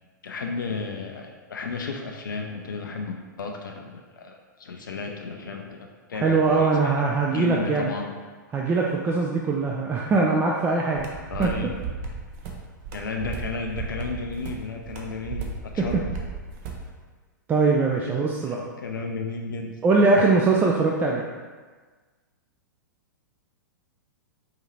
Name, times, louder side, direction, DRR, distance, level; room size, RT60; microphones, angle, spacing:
voice 1, 0.2-6.9 7.3-8.1 11.3-11.7 12.9-16.1 18.0-18.1 18.5-19.7, left 4 dB, 80° left, 2 dB, 0.4 m, -33 dB
voice 2, 6.1-7.9 8.5-11.1 11.4-11.5 15.8-16.0 17.5-18.6 19.8-21.3, right 3 dB, 15° right, -1 dB, 0.3 m, -22 dB
sound 1, 10.9-16.9, right 5 dB, 40° right, 0.7 m, -35 dB
4.8 x 2.7 x 3.1 m, 1.4 s
hypercardioid pair, 110°, 11 cm